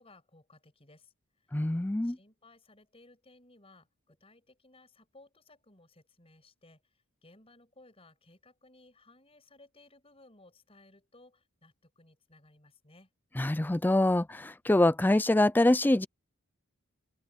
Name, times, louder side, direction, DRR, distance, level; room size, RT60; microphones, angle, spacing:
voice 1, 0.0-1.6 2.0-13.1, left 2 dB, 25° left, 6.4 m, -60 dB
voice 2, 1.5-2.2 13.4-16.1, left 1 dB, 10° left, 0.3 m, -25 dB
head